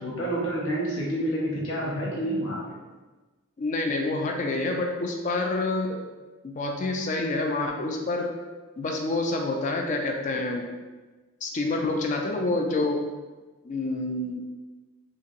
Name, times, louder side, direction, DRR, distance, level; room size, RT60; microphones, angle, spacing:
voice 1, 0.0-2.6, right 1 dB, 65° left, -5 dB, 0.8 m, -28 dB
voice 2, 3.6-6.0 6.4-8.4 8.8-10.7 11.4-13.0 13.6-14.4, left 2 dB, 35° left, 2 dB, 0.3 m, -27 dB
2.9 x 2.6 x 2.5 m, 1.2 s
head